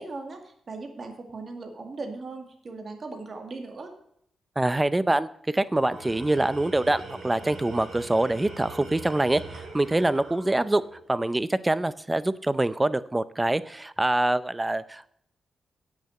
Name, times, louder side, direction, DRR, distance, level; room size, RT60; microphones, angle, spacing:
voice 1, 0.0-3.9, right 3 dB, 45° right, 4 dB, 2.1 m, -38 dB
voice 2, 4.6-10.8 11.1-15.1, right 2 dB, 15° right, 16 dB, 0.6 m, -25 dB
Tools, 5.7-11.1, right 3 dB, 70° right, 2.7 m, -42 dB
8.6 x 6.7 x 7.7 m, 0.69 s
cardioid pair, 85°, 0 cm